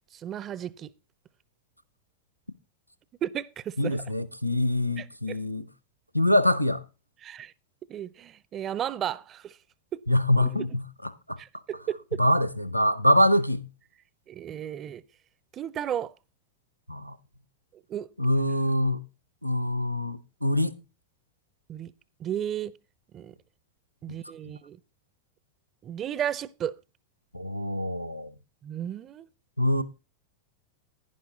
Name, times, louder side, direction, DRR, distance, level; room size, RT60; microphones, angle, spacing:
voice 1, 0.1-0.9 3.2-4.0 5.0-5.4 7.2-7.5 7.9-9.6 9.9-10.0 10.4-10.5 11.4-12.2 14.3-15.0 15.5-16.1 17.9-18.1 21.7-21.9 22.2-22.7 23.1-23.3 24.0-24.8 25.8-26.8 28.6-29.3, right 10 dB, 30° right, 0.5 m, -34 dB
voice 2, 3.8-5.7 6.1-6.8 10.1-11.4 12.2-13.7 16.9-17.2 18.2-19.0 19.4-20.8 27.3-28.3 29.6-29.8, left 1 dB, 90° right, 0.6 m, -24 dB
10.5 x 10.5 x 3.9 m
figure-of-eight pair, 90°, 0 cm